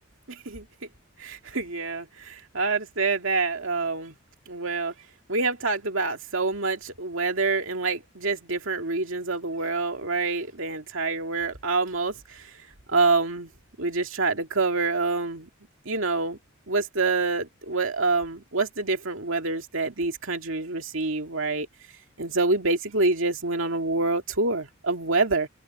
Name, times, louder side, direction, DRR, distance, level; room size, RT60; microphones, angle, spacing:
voice 1, 0.3-0.7 1.2-4.1 4.5-4.9 5.3-12.5 12.9-13.5 13.8-15.5 15.9-16.4 16.7-21.7 22.2-25.5, right 3 dB, 65° right, 2.5 m, -26 dB
head